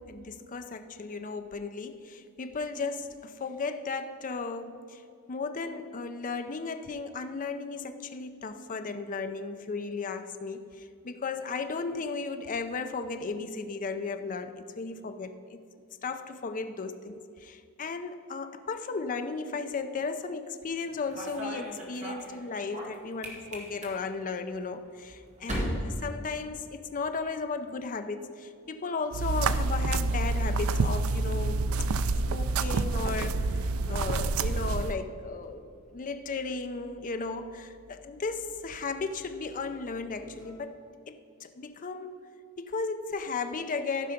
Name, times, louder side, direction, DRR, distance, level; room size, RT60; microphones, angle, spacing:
voice 1, 0.0-5.0 5.3-15.6 16.0-31.7 32.3-42.2 42.6-44.1, left 4 dB, 40° left, 8 dB, 0.5 m, -35 dB
sound 1, 20.8-27.0 27.3-27.8 28.9-40.6, equal, 35° right, 1.8 m, -43 dB
sound 2, 29.1-34.9, right 3 dB, 70° right, 0.4 m, -28 dB
14.5 x 5.6 x 5.1 m, 2.4 s
head